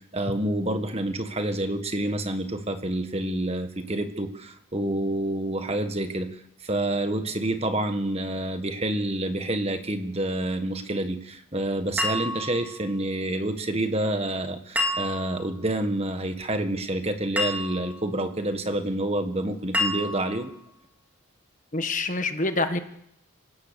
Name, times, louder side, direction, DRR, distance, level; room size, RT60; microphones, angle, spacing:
voice 1, 0.0-20.5, right 1 dB, 30° right, 7 dB, 1.5 m, -28 dB
sound 1, 12.0-12.9 14.8-15.5 17.4-18.0 19.7-20.5, left 1 dB, 5° right, 2.8 m, -29 dB
voice 2, 21.7-22.8, left 2 dB, 35° left, 8 dB, 1.4 m, -26 dB
26.0 x 17.5 x 6.9 m, 0.76 s
head